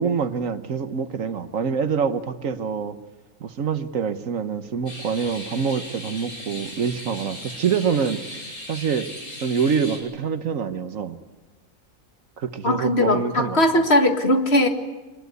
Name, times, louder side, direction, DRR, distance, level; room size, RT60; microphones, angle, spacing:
voice 1, 0.0-3.0 3.4-8.4 8.7-9.1 9.4-11.2 12.4-13.6, right 6 dB, 65° right, 10 dB, 1.4 m, -25 dB
sound 1, 4.9-10.0, left 1 dB, 80° left, 5.9 m, -38 dB
voice 2, 12.6-14.7, left 1 dB, 45° left, 5 dB, 2.1 m, -19 dB
24.0 x 20.5 x 8.2 m, 1.2 s
omnidirectional pair, 1.5 m